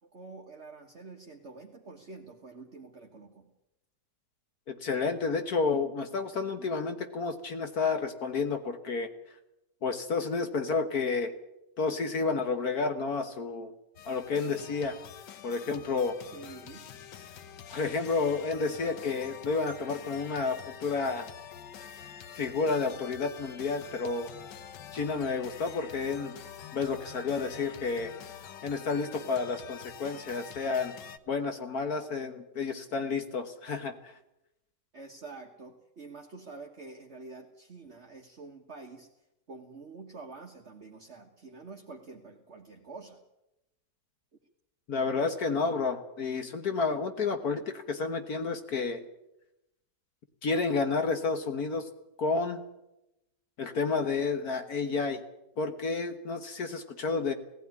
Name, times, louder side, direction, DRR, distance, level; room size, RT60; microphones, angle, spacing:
voice 1, 0.0-3.5 6.6-6.7 16.3-16.9 25.9-26.1 34.9-39.1 39.5-43.2, right 3 dB, 40° right, 1 dB, 1.7 m, -47 dB
voice 2, 4.7-9.1 9.8-11.3 11.8-13.7 14.1-15.0 15.4-16.2 17.7-21.3 22.4-24.3 24.9-26.4 26.7-28.1 28.6-31.0 31.3-34.1 44.9-49.0 50.4-51.9 52.2-52.6 53.6-55.2 55.6-57.3, left 4 dB, 60° left, 7 dB, 1.8 m, -30 dB
sound 1, 14.0-31.2, left 9 dB, 90° left, 1.7 m, -46 dB
18.5 x 15.5 x 9.6 m, 0.89 s
omnidirectional pair, 1.8 m